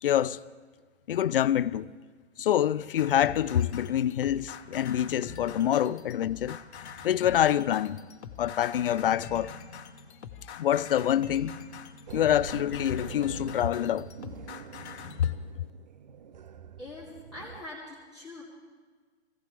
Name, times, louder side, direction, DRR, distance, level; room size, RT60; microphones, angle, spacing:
voice 1, 0.0-0.4 1.1-1.9 2.4-6.6 7.0-8.0 8.4-9.5 10.6-11.6 12.1-14.1 15.2-15.3, left 11 dB, 50° left, 0.5 m, -26 dB
sound 1, 3.0-15.3, left 6 dB, 70° left, 1.3 m, -44 dB
sound 2, 12.1-17.6, right 7 dB, 40° right, 0.5 m, -45 dB
voice 2, 16.8-18.4, left 2 dB, ahead, 2.5 m, -43 dB
24.5 x 16.5 x 3.4 m
hypercardioid pair, 175°, 35 cm